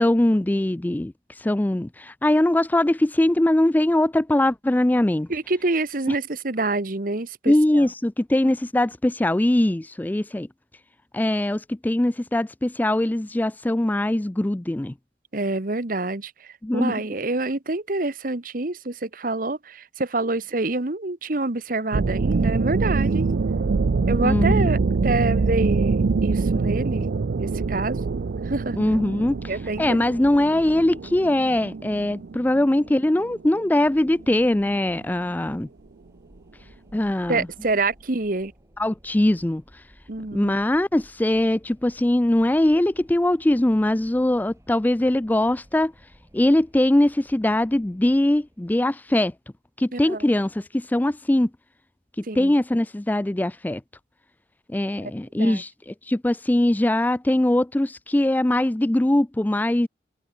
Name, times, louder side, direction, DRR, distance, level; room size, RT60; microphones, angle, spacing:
voice 1, 0.0-5.3 7.5-10.5 11.1-14.9 16.6-16.9 24.2-24.7 28.8-29.4 29.8-35.7 36.9-37.5 38.8-39.6 40.3-45.9 46.3-49.3 49.8-51.5 52.4-53.8 54.7-59.9, left 1 dB, 10° left, 0.3 m, -21 dB
voice 2, 5.3-7.9 8.4-8.5 15.3-23.3 24.1-27.1 27.4-28.0 28.4-28.8 29.5-30.0 37.3-38.5 40.1-40.6 49.9-50.3 52.2-52.5 55.0-55.6, right 2 dB, 50° right, 1.3 m, -27 dB
sound 1, 21.9-34.5, right 4 dB, 65° right, 0.5 m, -24 dB
Wind, 33.8-49.2, equal, 15° right, 6.7 m, -55 dB
head